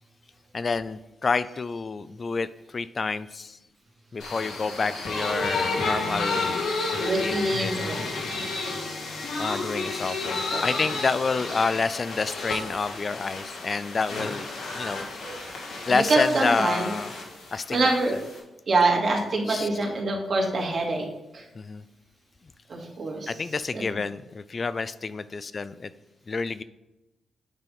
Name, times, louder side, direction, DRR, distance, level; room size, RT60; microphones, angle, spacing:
voice 1, 0.5-3.6 4.1-7.7 8.2-9.0 9.4-15.1 15.9-17.1 17.5-18.2 19.4-19.9 21.6-21.8 23.3-25.9 26.3-26.6, left 4 dB, 40° left, 14 dB, 0.3 m, -29 dB
sound 1, 4.2-18.4, left 3 dB, 85° left, 1.9 m, -31 dB
voice 2, 7.0-8.0 10.5-10.6 15.2-15.4 15.9-16.9 17.7-18.2 18.7-21.1 21.3-21.4 22.7-23.4 23.7-23.8, right 2 dB, 50° right, -1 dB, 2.0 m, -25 dB
8.2 x 3.5 x 5.4 m, 0.97 s
cardioid pair, 75°, 0 cm